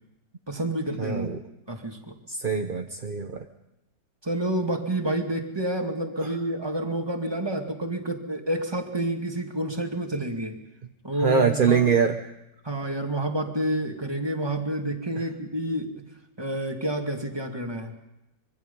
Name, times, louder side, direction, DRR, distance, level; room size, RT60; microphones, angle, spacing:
voice 1, 0.5-1.3 1.7-2.1 4.2-10.6 11.0-11.9 12.6-16.0 16.4-17.9, right 1 dB, 15° right, 3 dB, 2.2 m, -29 dB
voice 2, 1.0-1.4 2.3-3.4 11.2-12.2, right 6 dB, 35° right, 4 dB, 1.0 m, -23 dB
25.5 x 24.0 x 5.4 m, 0.92 s
omnidirectional pair, 1.9 m